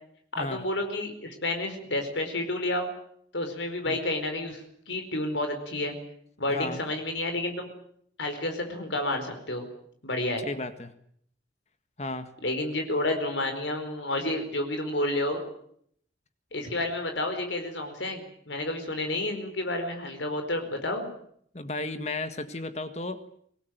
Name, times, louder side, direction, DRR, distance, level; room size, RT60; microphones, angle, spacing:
voice 1, 0.3-2.9 3.3-4.6 4.9-5.9 6.4-7.7 8.2-9.6 10.0-10.4 12.4-15.4 16.5-21.1, left 1 dB, 85° left, 5 dB, 4.7 m, -30 dB
voice 2, 6.5-6.8 10.4-10.9 12.0-12.3 21.5-23.2, left 2 dB, 35° left, 10 dB, 1.7 m, -34 dB
25.5 x 18.5 x 9.2 m, 0.66 s
head